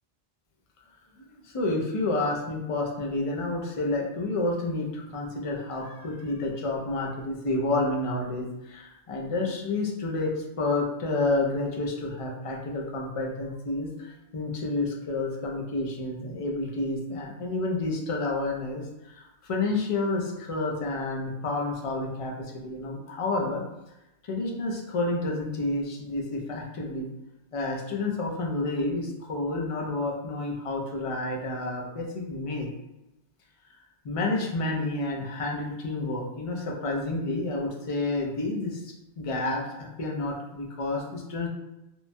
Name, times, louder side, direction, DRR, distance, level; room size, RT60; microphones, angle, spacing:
voice 1, 1.5-10.3 10.6-18.8 19.1-22.3 22.6-23.6 24.3-27.1 27.5-32.7 34.0-38.8 39.2-41.5, left 2 dB, 55° left, -1 dB, 0.3 m, -29 dB
3.0 x 2.1 x 2.6 m, 0.93 s
omnidirectional pair, 1.1 m